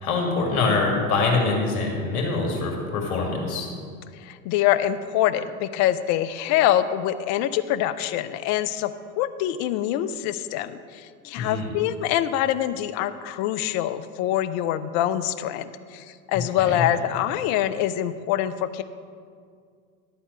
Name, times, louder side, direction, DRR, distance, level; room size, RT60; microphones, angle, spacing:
voice 1, 0.0-3.7 11.4-11.7 16.6-16.8, left 3 dB, 70° left, 0 dB, 2.3 m, -24 dB
voice 2, 4.2-18.8, left 12 dB, 40° left, 12 dB, 0.5 m, -25 dB
12.0 x 4.3 x 6.8 m, 2.1 s
hypercardioid pair, 90°, 45 cm